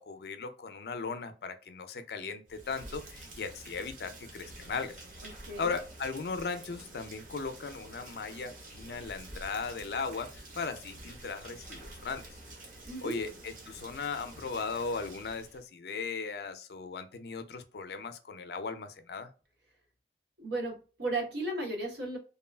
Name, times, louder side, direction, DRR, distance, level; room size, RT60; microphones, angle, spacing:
voice 1, 0.0-5.0 5.6-12.2 13.0-19.3, left 4 dB, 65° left, 0.4 m, -37 dB
Rain, 2.4-15.6, right 1 dB, 50° right, 0.7 m, -49 dB
voice 2, 5.2-5.7 12.9-13.2 20.4-22.2, right 2 dB, 80° right, 1.1 m, -35 dB
2.9 x 2.3 x 2.2 m
head